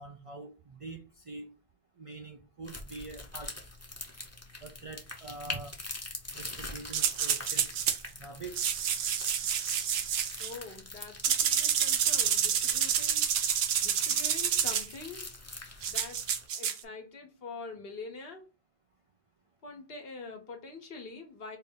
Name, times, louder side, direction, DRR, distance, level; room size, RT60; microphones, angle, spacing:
voice 1, 0.0-1.5 2.0-3.5 4.6-5.8 6.3-7.7 8.2-8.6, right 3 dB, 50° right, 3 dB, 0.4 m, -44 dB
sound 1, 2.6-16.5, left 2 dB, 15° left, 0.7 m, -44 dB
sound 2, 6.9-8.0 8.6-10.5 11.2-14.9 15.8-16.8, right 8 dB, 80° right, 0.8 m, -28 dB
voice 2, 10.4-13.2 13.8-15.4 15.9-16.2 16.5-18.4 19.6-21.6, left 3 dB, 65° left, 4 dB, 1.2 m, -44 dB
4.2 x 2.6 x 3.6 m, 0.31 s
omnidirectional pair, 1.1 m